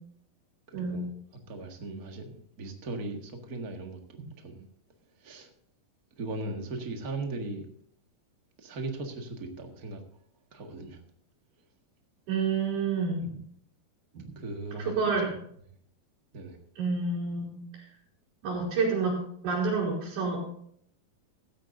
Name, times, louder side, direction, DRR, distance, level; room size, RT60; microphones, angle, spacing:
voice 1, 0.7-1.1 1.5-4.7 5.2-5.5 6.2-7.7 8.6-10.0 10.5-11.0 14.3-14.9 15.2-15.3 16.3-16.6, right 2 dB, 40° right, 3 dB, 1.3 m, -38 dB
voice 2, 12.3-13.4 14.1-14.3 14.8-15.3 16.8-17.9 18.4-20.4, right 4 dB, 85° right, -7 dB, 5.8 m, -29 dB
16.0 x 13.0 x 2.7 m, 0.64 s
omnidirectional pair, 4.4 m